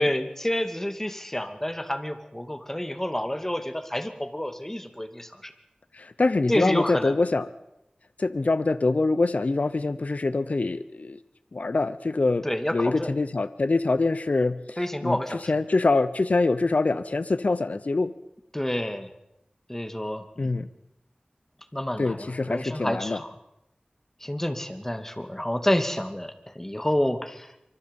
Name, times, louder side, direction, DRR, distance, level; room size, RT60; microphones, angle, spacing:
voice 1, 0.0-5.5 6.5-7.1 12.4-13.1 14.8-15.5 18.5-19.1 19.7-20.5 21.7-23.4 24.2-27.5, left 1 dB, 15° left, 7 dB, 2.4 m, -29 dB
voice 2, 5.9-7.4 8.2-11.2 11.5-12.5 12.7-15.2 15.5-18.1 20.4-20.7 22.0-23.2, left 3 dB, 65° left, 13 dB, 0.8 m, -24 dB
24.5 x 24.5 x 5.4 m, 0.82 s
wide cardioid pair, 65°, 3 cm